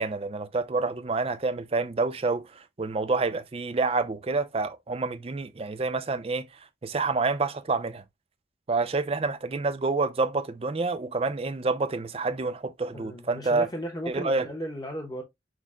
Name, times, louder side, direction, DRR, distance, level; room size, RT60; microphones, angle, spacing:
voice 1, 0.0-6.5 6.8-8.0 8.7-13.7 14.1-14.5, right 3 dB, 30° right, 0.4 m, -28 dB
voice 2, 12.9-15.2, equal, 20° left, 0.7 m, -35 dB
6.2 x 2.1 x 3.5 m
head